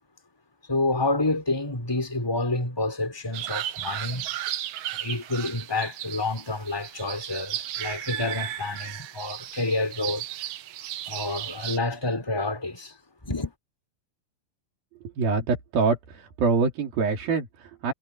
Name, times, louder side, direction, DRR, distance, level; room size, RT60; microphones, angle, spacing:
voice 1, 0.7-4.3 4.9-10.3 11.1-13.0 13.2-13.5, left 2 dB, 5° left, 4.3 m, -28 dB
sound 1, 3.3-11.8, right 13 dB, 90° right, 3.2 m, -35 dB
voice 2, 15.2-17.9, right 4 dB, 70° right, 5.0 m, -25 dB
omnidirectional pair, 4.4 m